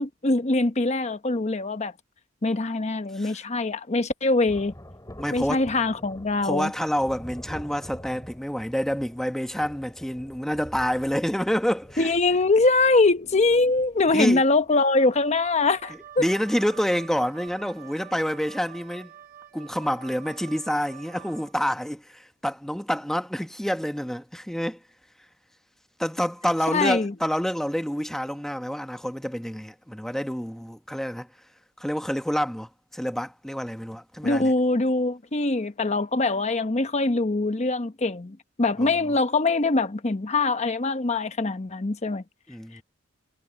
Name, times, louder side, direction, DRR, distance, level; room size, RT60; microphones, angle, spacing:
voice 1, 0.0-1.9 2.4-4.7 5.3-6.7 12.0-16.2 26.7-27.1 34.2-42.2, left 3 dB, 35° left, 0.9 m, -23 dB
Thunder, 4.5-16.5 16.7-16.8, equal, 20° left, 4.9 m, -46 dB
voice 2, 5.2-5.6 6.4-12.1 14.1-14.4 16.2-19.1 19.5-24.8 26.0-31.3 31.8-34.5 38.8-38.9 42.5-42.8, equal, ahead, 1.0 m, -28 dB
Wind instrument woodwind instrument, 14.8-21.5, right 10 dB, 45° right, 2.0 m, -47 dB
head